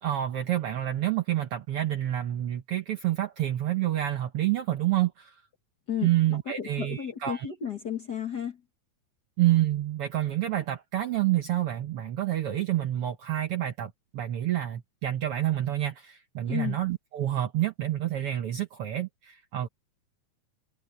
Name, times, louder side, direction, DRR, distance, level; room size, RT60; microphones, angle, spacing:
voice 1, 0.0-5.3 6.0-7.5 9.4-19.7, right 13 dB, 65° right, 1.5 m, -28 dB
voice 2, 5.9-8.6 16.4-16.8, left 9 dB, 40° left, 1.6 m, -33 dB
omnidirectional pair, 3.5 m